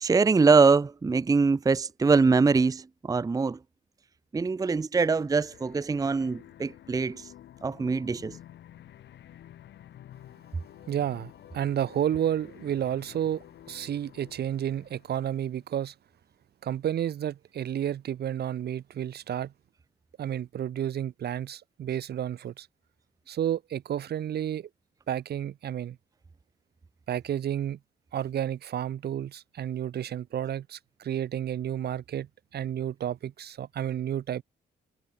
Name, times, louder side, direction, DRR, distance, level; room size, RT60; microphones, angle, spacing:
voice 1, 0.0-3.6 4.3-7.2 7.6-8.4, right 4 dB, 20° right, 0.6 m, -23 dB
sound 1, 5.1-15.6, left 12 dB, 85° left, 3.4 m, -51 dB
voice 2, 10.9-15.9 16.6-19.5 20.2-22.7 23.3-24.7 25.1-26.0 27.1-27.8 28.1-32.3 32.5-34.4, right 10 dB, 65° right, 1.0 m, -31 dB
cardioid pair, 95°, 18 cm